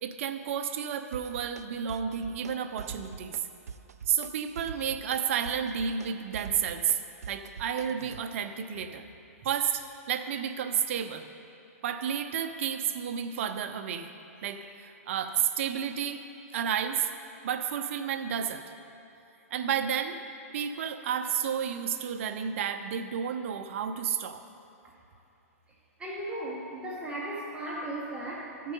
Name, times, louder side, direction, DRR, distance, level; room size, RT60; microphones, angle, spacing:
voice 1, 0.0-3.4 4.1-7.0 7.3-9.1 9.4-11.2 11.8-14.1 14.4-16.2 16.5-17.1 17.4-18.6 19.5-20.2 20.5-24.4, right 8 dB, 55° right, 7 dB, 0.6 m, -31 dB
sound 1, 1.1-1.6 1.9-2.5 2.8-3.4 3.7-4.3 4.6-8.2, right 6 dB, 90° right, 0.4 m, -43 dB
voice 2, 26.0-28.7, right 1 dB, 15° right, -5 dB, 1.1 m, -36 dB
13.5 x 4.6 x 5.3 m, 2.8 s
hypercardioid pair, 135°, 8 cm